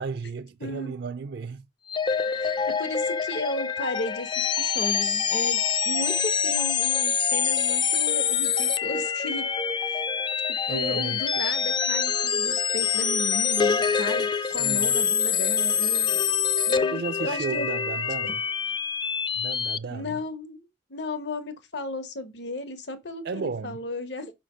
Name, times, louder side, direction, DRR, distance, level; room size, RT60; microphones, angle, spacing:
voice 1, 0.0-1.7 10.7-11.2 14.4-15.0 16.9-18.4 19.3-20.2 23.2-23.8, right 5 dB, 60° right, 0.4 m, -34 dB
voice 2, 0.6-1.0 2.4-5.6 5.8-9.4 9.9-10.1 10.7-16.2 16.7-17.7 19.9-24.3, left 2 dB, 70° left, 1.1 m, -34 dB
sound 1, 1.9-19.8, left 7 dB, 25° left, 0.3 m, -25 dB
5.8 x 5.5 x 5.0 m
head